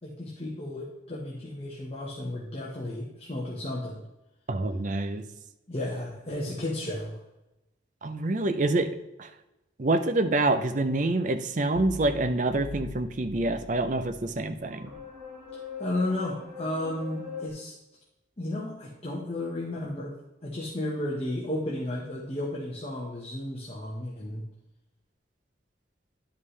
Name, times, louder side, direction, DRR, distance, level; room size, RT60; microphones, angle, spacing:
voice 1, 0.0-4.0 5.7-7.2 15.8-17.7 18.4-20.1 20.4-24.4, left 1 dB, 35° left, -4 dB, 1.2 m, -33 dB
voice 2, 4.5-5.2 8.0-8.9 9.2-9.3 9.8-14.9, right 2 dB, 45° right, 8 dB, 0.6 m, -26 dB
sound 1, 11.7-17.5, left 3 dB, 20° right, 1.8 m, -42 dB
11.0 x 5.4 x 3.3 m, 0.94 s
head